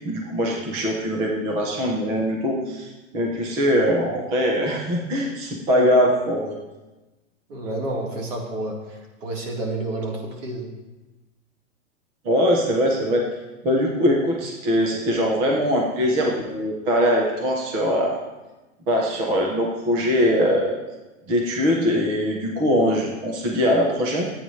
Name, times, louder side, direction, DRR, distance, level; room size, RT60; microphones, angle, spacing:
voice 1, 0.0-6.6 12.2-13.2 13.6-18.1 18.9-20.8 21.3-24.3, equal, 10° right, 0 dB, 0.3 m, -22 dB
voice 2, 7.5-10.7, right 2 dB, 70° right, -2 dB, 3.5 m, -30 dB
20.5 x 8.7 x 3.1 m, 1.1 s
supercardioid pair, 160°, 40 cm